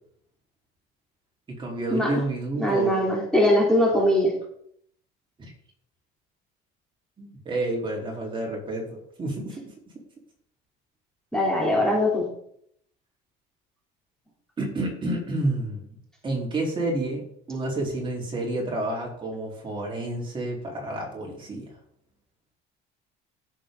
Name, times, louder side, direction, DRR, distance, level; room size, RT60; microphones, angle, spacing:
voice 1, 1.5-3.0 4.0-4.1 5.4-5.5 7.2-9.7 14.6-15.8 16.2-21.7, right 2 dB, 25° right, -2 dB, 4.1 m, -30 dB
voice 2, 2.6-4.3 11.3-12.3, left 1 dB, 5° left, -4 dB, 3.3 m, -21 dB
16.5 x 7.3 x 3.9 m, 0.69 s
cardioid pair, 125°, 20 cm